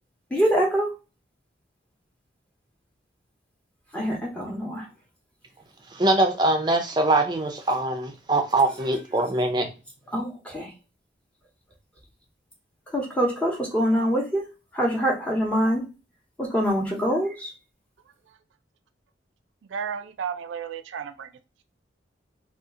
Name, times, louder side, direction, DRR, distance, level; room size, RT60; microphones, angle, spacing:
voice 1, 0.3-0.9 3.9-4.9 10.1-10.7 12.9-14.5 14.7-15.9 16.4-17.5, equal, 5° left, 0.8 m, -24 dB
voice 2, 5.9-9.7, right 2 dB, 20° right, 0.5 m, -23 dB
voice 3, 19.7-21.3, right 7 dB, 80° right, 0.4 m, -33 dB
2.7 x 2.4 x 3.6 m
head